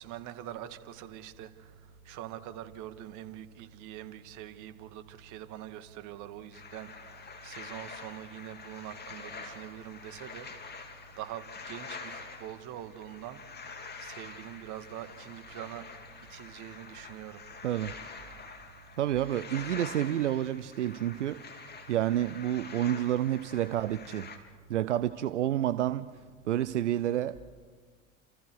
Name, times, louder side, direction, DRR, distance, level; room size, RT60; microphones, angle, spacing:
voice 1, 0.0-1.5 2.1-6.9 7.4-10.5 11.2-13.4 14.0-15.8 16.3-17.4, right 12 dB, 60° right, 2.0 m, -43 dB
sound 1, 6.5-24.4, left 4 dB, 30° left, 3.6 m, -46 dB
voice 2, 17.6-17.9 19.0-21.4 21.9-24.3 24.7-26.1 26.4-27.4, right 12 dB, 90° right, 0.7 m, -29 dB
29.5 x 28.0 x 4.7 m
hypercardioid pair, 75°, 35 cm